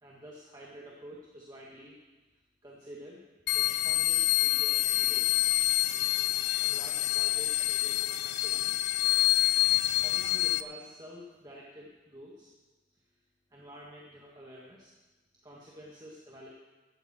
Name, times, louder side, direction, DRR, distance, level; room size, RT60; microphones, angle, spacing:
voice 1, 0.0-2.0 2.6-3.2 3.5-5.3 6.6-8.8 10.0-12.5 13.5-14.9 15.4-16.5, equal, 20° right, -4 dB, 1.7 m, -49 dB
sound 1, 3.5-10.6, left 17 dB, 60° left, 0.4 m, -27 dB
16.0 x 12.5 x 4.4 m, 1.2 s
head